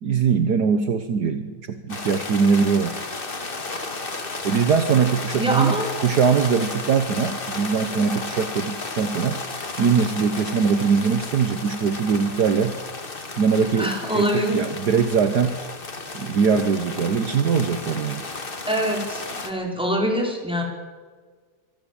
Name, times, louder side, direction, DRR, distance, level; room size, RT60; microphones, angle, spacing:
voice 1, 0.0-3.0 4.4-9.4 9.8-12.8 13.4-15.6 16.1-18.3, right 6 dB, 60° right, 8 dB, 1.6 m, -21 dB
sound 1, 1.9-19.5, left 3 dB, 30° left, 1.8 m, -33 dB
voice 2, 5.4-5.9 13.8-14.6 18.7-20.6, equal, 5° right, 0 dB, 5.0 m, -24 dB
24.5 x 15.0 x 8.7 m, 1.5 s
omnidirectional pair, 2.0 m